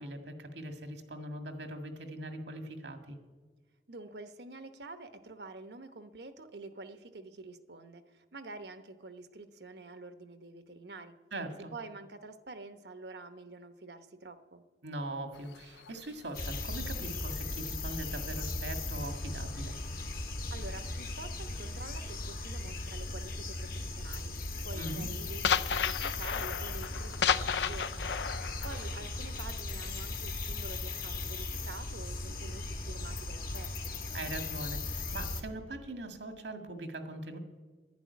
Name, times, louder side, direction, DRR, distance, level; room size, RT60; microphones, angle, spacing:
voice 1, 0.0-3.2 11.3-11.7 14.8-19.8 24.7-25.1 34.1-37.4, right 1 dB, 90° right, 5 dB, 1.9 m, -41 dB
voice 2, 3.9-11.1 11.7-14.6 20.5-33.9, right 3 dB, 70° right, 9 dB, 1.0 m, -48 dB
sound 1, 15.3-19.2 19.5-23.0 23.2-23.6 23.9-30.3, left 7 dB, 80° left, 0.5 m, -35 dB
sound 2, 16.3-35.4, left 2 dB, 55° left, 1.6 m, -38 dB
11.5 x 11.5 x 9.6 m, 1.4 s
head